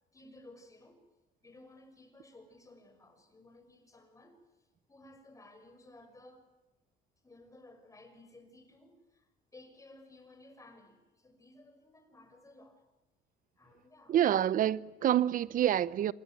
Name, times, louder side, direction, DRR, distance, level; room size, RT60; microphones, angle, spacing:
voice 1, 0.1-1.0 1.4-6.5 7.2-12.8 13.6-14.5, left 2 dB, 20° left, 6.1 m, -57 dB
voice 2, 14.1-16.1, right 11 dB, 55° right, 0.9 m, -27 dB
27.5 x 22.0 x 9.2 m
cardioid pair, 110°, 17 cm